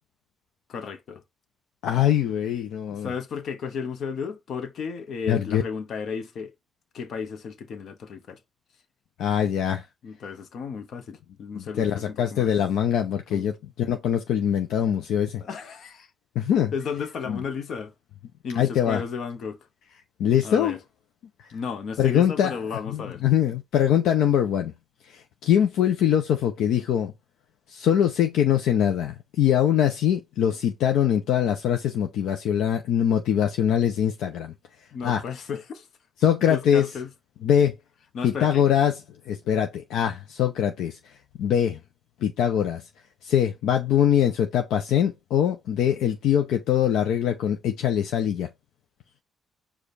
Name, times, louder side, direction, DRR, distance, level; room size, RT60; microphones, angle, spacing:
voice 1, 0.7-1.2 2.9-6.5 6.9-8.4 10.0-12.5 13.3-13.5 15.4-16.1 16.7-17.9 18.4-19.6 20.4-20.8 21.5-23.2 34.9-35.9 36.5-37.1 38.1-38.7, left 6 dB, 65° left, 1.0 m, -33 dB
voice 2, 1.8-3.1 5.3-5.6 9.2-9.8 11.5-15.4 16.3-16.7 17.3-17.4 18.6-19.0 20.2-20.8 22.0-22.6 22.9-24.7 25.1-27.1 27.7-34.5 35.0-35.2 36.2-36.9 37.4-37.8 38.2-39.0 39.3-41.0 41.4-41.8 42.2-42.8 43.2-48.5, left 9 dB, 85° left, 0.6 m, -23 dB
5.0 x 2.4 x 4.1 m
cardioid pair, 90°, 0 cm